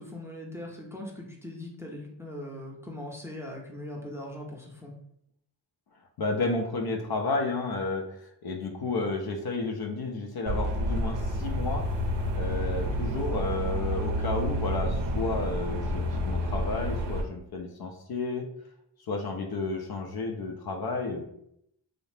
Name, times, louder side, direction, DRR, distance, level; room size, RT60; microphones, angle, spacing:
voice 1, 0.0-4.9, left 1 dB, 5° right, -2 dB, 0.6 m, -40 dB
voice 2, 6.2-8.0 8.4-11.8 12.3-18.5 19.1-21.2, left 3 dB, 55° left, 3 dB, 0.5 m, -31 dB
sound 1, 10.5-17.2, equal, 65° right, 0.6 m, -29 dB
2.6 x 2.0 x 3.1 m, 0.74 s
cardioid pair, 55°, 46 cm